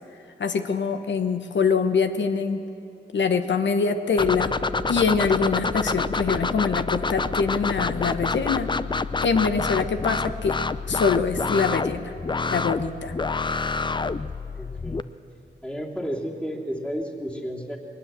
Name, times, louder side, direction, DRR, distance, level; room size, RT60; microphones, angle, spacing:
voice 1, 0.4-2.6 3.1-4.5 4.9-8.7 9.2-10.6 10.9-12.1 12.5-13.1, left 5 dB, 80° left, 8 dB, 1.1 m, -24 dB
sound 1, 4.2-15.0, left 4 dB, 25° left, 0.5 m, -27 dB
voice 2, 14.5-15.0 15.6-17.8, equal, 5° left, -1 dB, 3.0 m, -32 dB
21.5 x 19.0 x 7.5 m, 2.6 s
cardioid pair, 65°, 19 cm